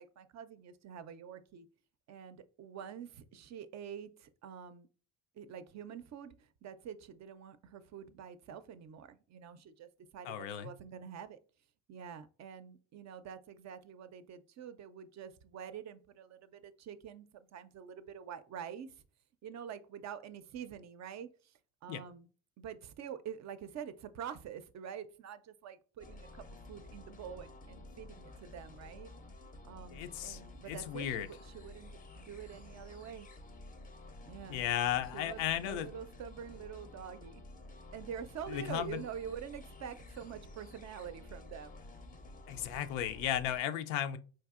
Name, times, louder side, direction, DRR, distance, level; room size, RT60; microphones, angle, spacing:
voice 1, 0.0-1.7 2.1-4.9 5.4-11.4 11.9-18.9 19.4-21.3 21.8-22.3 22.6-29.1 29.6-33.3 34.2-34.7 35.1-37.4 37.9-41.8, right 8 dB, 45° right, 0.4 m, -46 dB
voice 2, 10.2-10.8 21.9-22.0 29.9-31.3 34.5-35.9 38.5-39.0 42.5-44.2, left 11 dB, 80° left, 0.5 m, -35 dB
sound 1, 26.0-43.6, left 2 dB, 20° left, 0.5 m, -52 dB
4.5 x 2.6 x 2.4 m
supercardioid pair, 70°, 42 cm